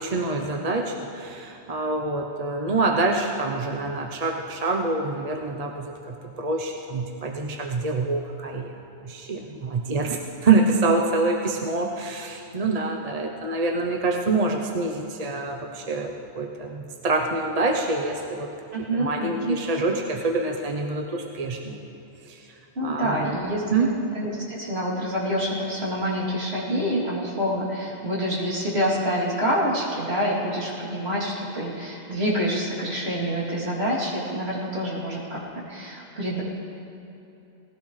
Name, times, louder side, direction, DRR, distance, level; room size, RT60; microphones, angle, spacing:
voice 1, 0.0-18.5 18.9-21.8 22.3-22.4 22.8-23.3 23.7-23.9, right 3 dB, 35° right, 1 dB, 0.8 m, -26 dB
voice 2, 18.7-19.6 22.7-36.4, equal, 60° right, -6 dB, 3.3 m, -27 dB
19.5 x 15.5 x 3.3 m, 3.0 s
omnidirectional pair, 1.2 m